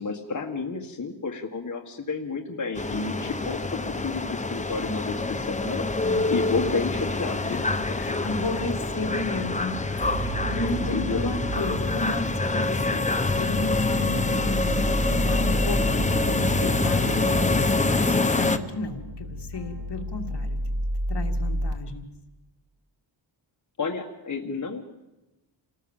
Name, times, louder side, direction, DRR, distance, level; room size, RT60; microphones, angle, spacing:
voice 1, 0.0-5.9 6.3-8.0 10.6-11.4 23.8-24.8, left 4 dB, 35° left, 2 dB, 1.7 m, -31 dB
sound 1, 2.8-18.6, left 3 dB, 15° left, 0.8 m, -26 dB
voice 2, 6.0-6.4 7.5-7.6 7.9-14.8 15.1-20.6 21.1-22.1, left 2 dB, 55° left, 4 dB, 2.3 m, -33 dB
sound 2, 10.0-21.7, right 1 dB, 60° right, 2.4 m, -31 dB
28.5 x 19.0 x 7.3 m, 1.0 s
wide cardioid pair, 175°, 48 cm